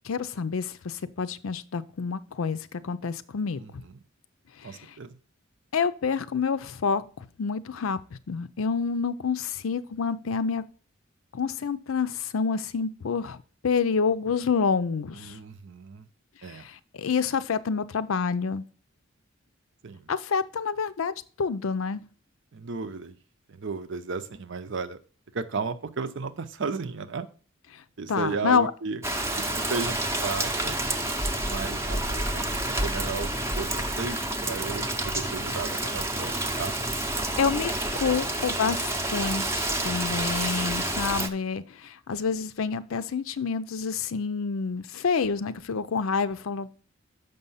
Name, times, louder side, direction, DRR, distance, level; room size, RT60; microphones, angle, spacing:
voice 1, 0.1-2.6 2.8-3.6 5.7-7.0 7.4-8.0 8.3-10.6 11.3-13.4 13.6-15.3 16.9-18.6 20.1-22.0 28.1-28.7 37.4-46.8, left 5 dB, 90° left, 14 dB, 0.5 m, -28 dB
voice 2, 3.6-4.0 4.6-5.1 15.1-16.1 16.4-16.7 19.8-20.1 22.5-23.2 23.5-25.0 25.3-27.3 28.0-29.0 29.4-30.7 31.4-33.3 33.6-36.7 38.2-38.3, right 4 dB, 60° right, 12 dB, 0.7 m, -34 dB
Rain, 29.0-41.3, right 1 dB, 15° right, 0.6 m, -29 dB
6.7 x 5.4 x 5.6 m, 0.41 s
head